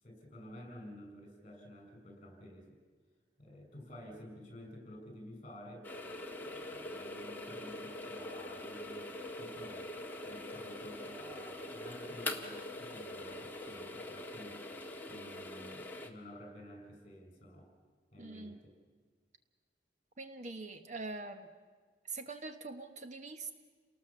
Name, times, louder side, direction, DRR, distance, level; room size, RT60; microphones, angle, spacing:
voice 1, 0.0-2.8 3.4-5.9 6.4-9.9 10.2-14.6 15.1-17.7 18.1-18.7, left 1 dB, 35° left, 3 dB, 6.1 m, -51 dB
sound 1, 5.8-16.1, left 1 dB, 10° left, 1.6 m, -43 dB
voice 2, 18.2-18.6 20.2-21.5 22.1-23.5, right 3 dB, 40° right, 8 dB, 1.0 m, -43 dB
29.5 x 19.0 x 7.2 m, 1.5 s
head